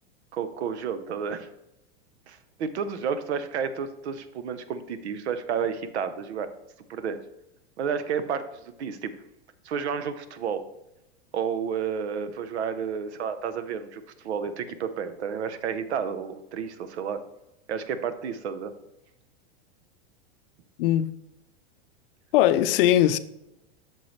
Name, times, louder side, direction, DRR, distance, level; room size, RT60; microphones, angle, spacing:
voice 1, 0.3-1.5 2.3-6.5 6.9-7.2 7.8-9.1 9.6-10.7 11.3-17.2 17.7-18.7, right 7 dB, 90° right, 0.8 m, -31 dB
voice 2, 20.8-21.1 22.3-23.2, left 12 dB, 60° left, 0.5 m, -20 dB
8.2 x 6.5 x 3.2 m
supercardioid pair, 140°, 32 cm